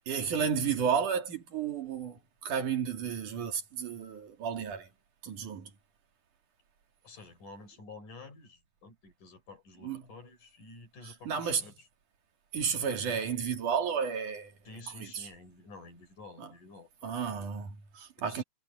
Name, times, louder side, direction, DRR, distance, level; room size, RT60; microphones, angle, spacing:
voice 1, 0.1-4.9 5.2-5.7 9.8-10.1 11.0-11.6 12.5-14.5 15.0-15.3 16.4-16.5 17.0-18.4, right 7 dB, 80° right, 4.1 m, -32 dB
voice 2, 7.0-11.7 14.7-17.1 18.2-18.4, left 3 dB, 85° left, 7.2 m, -50 dB
omnidirectional pair, 3.5 m